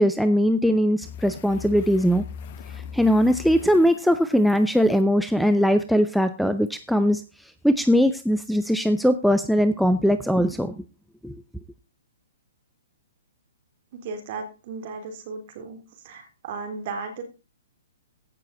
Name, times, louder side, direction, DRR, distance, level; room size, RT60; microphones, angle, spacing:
voice 1, 0.0-2.2 2.9-7.2 7.6-10.8 11.2-11.4, equal, ahead, 12 dB, 0.6 m, -20 dB
sound 1, 1.0-5.0 6.7-6.8, left 7 dB, 40° left, 1.0 m, -40 dB
voice 2, 13.9-15.8 16.0-17.2, right 4 dB, 45° right, 6 dB, 3.9 m, -35 dB
16.0 x 6.8 x 4.2 m, 0.33 s
figure-of-eight pair, 120°, 0 cm